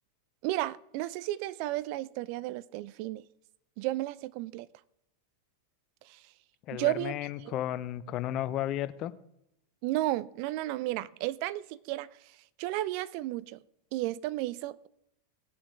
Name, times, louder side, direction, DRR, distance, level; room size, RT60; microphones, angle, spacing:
voice 1, 0.4-3.2 3.8-4.7 6.0-6.2 6.7-7.1 7.4-7.6 9.8-12.1 12.6-13.6 13.9-14.9, right 16 dB, 50° right, 0.5 m, -33 dB
voice 2, 6.6-9.1, left 12 dB, 40° left, 0.7 m, -33 dB
19.0 x 7.3 x 3.5 m
figure-of-eight pair, 95°, 0 cm